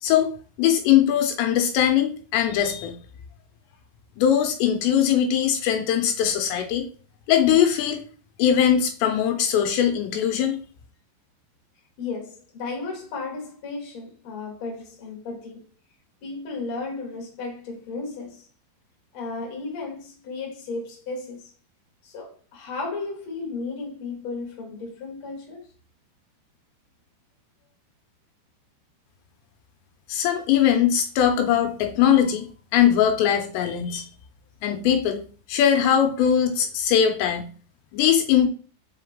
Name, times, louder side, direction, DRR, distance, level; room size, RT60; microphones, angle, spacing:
voice 1, 0.0-3.0 4.2-6.9 7.3-8.0 8.4-10.6 30.1-34.1 34.6-35.2 35.5-37.5 37.9-38.5, left 9 dB, 85° left, 2.9 m, -21 dB
voice 2, 12.0-15.7 16.2-18.5 19.1-21.5 22.0-25.7, left 3 dB, 45° left, 1.8 m, -34 dB
5.3 x 4.8 x 3.7 m
omnidirectional pair, 5.1 m